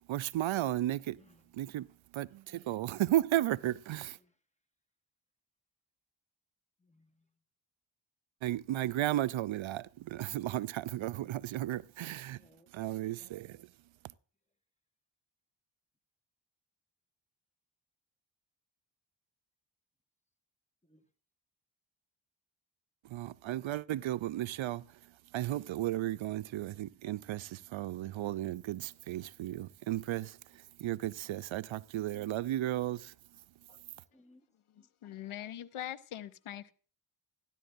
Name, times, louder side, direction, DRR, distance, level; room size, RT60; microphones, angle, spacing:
voice 1, 0.1-1.2 1.5-1.9 2.1-4.2 8.4-12.4 12.7-13.7 23.1-24.9 25.3-30.4 30.8-33.1, right 14 dB, 70° right, 0.5 m, -34 dB
voice 2, 1.1-1.5 3.9-4.3 6.8-7.2 12.3-12.7 20.8-21.0 30.8-30.9 34.1-34.5 34.8-35.1, left 1 dB, 15° left, 1.5 m, -65 dB
voice 3, 34.7-36.7, left 11 dB, 90° left, 0.8 m, -43 dB
14.0 x 11.0 x 2.5 m
cardioid pair, 55°, 48 cm